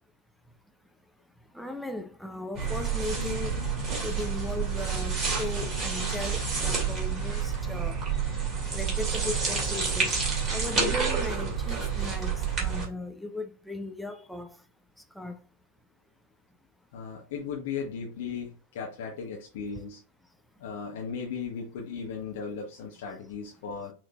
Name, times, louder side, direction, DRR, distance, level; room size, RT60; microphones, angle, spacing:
voice 1, 1.2-8.1 8.7-14.7 15.0-15.5, left 2 dB, ahead, 0.5 m, -38 dB
sound 1, 2.5-12.9, right 5 dB, 25° right, 2.1 m, -29 dB
voice 2, 16.9-20.0 20.6-23.9, left 6 dB, 55° left, 0.9 m, -36 dB
5.7 x 3.1 x 2.3 m
figure-of-eight pair, 90°, 0 cm